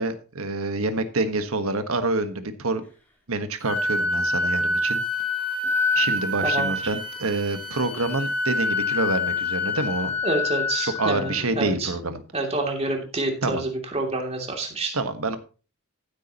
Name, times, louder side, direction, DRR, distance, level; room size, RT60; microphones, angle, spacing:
voice 1, 0.0-2.8 3.3-5.0 5.9-10.2 11.0-12.2 13.4-13.6 14.9-15.4, right 2 dB, 80° right, 1.5 m, -27 dB
Wind instrument woodwind instrument, 3.6-11.4, left 3 dB, 10° left, 3.1 m, -26 dB
voice 2, 6.4-6.7 10.2-11.9 12.3-14.9, right 2 dB, 30° right, 2.9 m, -28 dB
15.0 x 8.5 x 3.0 m
head